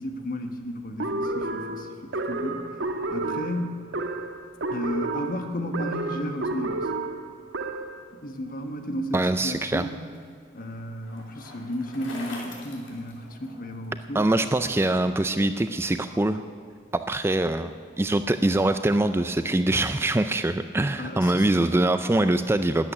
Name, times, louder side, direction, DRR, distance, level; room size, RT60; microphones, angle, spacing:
voice 1, 0.0-2.7 3.1-3.8 4.7-6.9 8.1-10.0 10.5-14.3 21.0-21.5, equal, 50° left, 6 dB, 1.4 m, -33 dB
sound 1, 1.0-8.0, right 2 dB, 80° right, 1.2 m, -31 dB
voice 2, 9.1-9.9 14.1-16.4 16.9-17.7 18.0-22.9, right 2 dB, 15° right, 10 dB, 0.4 m, -23 dB
Bicycle, 9.4-13.9, left 2 dB, 85° left, 3.1 m, -44 dB
12.5 x 8.7 x 9.9 m, 2.2 s
head